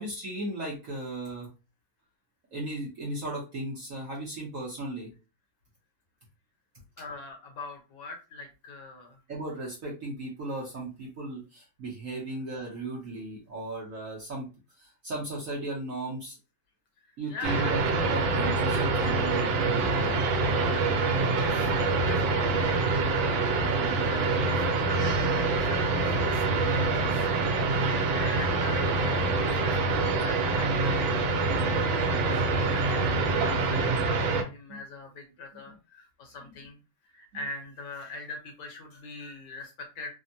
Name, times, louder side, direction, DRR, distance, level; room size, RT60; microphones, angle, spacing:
voice 1, 0.0-1.5 2.5-5.1 9.3-14.5 14.7-16.4 17.2-20.4 23.6-24.0 34.7-34.8 35.7-35.8 36.4-36.6, right 2 dB, 60° right, -4 dB, 0.9 m, -36 dB
voice 2, 7.0-9.2 17.0-17.8 20.7-21.7 22.0-22.2 22.5-23.0 23.6-26.4 26.7-27.3 27.8-29.7 30.0-31.4 31.8-40.1, left 3 dB, 65° left, 2 dB, 1.3 m, -43 dB
sound 1, 17.4-34.4, right 3 dB, 75° right, 1.4 m, -25 dB
3.4 x 2.1 x 2.6 m, 0.30 s
omnidirectional pair, 2.2 m